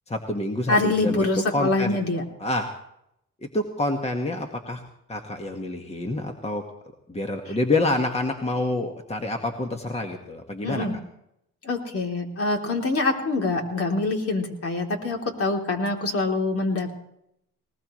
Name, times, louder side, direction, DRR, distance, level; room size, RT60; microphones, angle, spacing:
voice 1, 0.1-2.0 2.4-2.7 3.5-4.8 5.1-6.6 7.1-10.9, left 2 dB, 20° left, 3 dB, 1.7 m, -27 dB
voice 2, 0.7-2.2 10.6-10.9 11.6-16.9, left 3 dB, 50° left, 1 dB, 3.4 m, -25 dB
20.0 x 19.5 x 3.2 m, 0.78 s
cardioid pair, 90°, 30 cm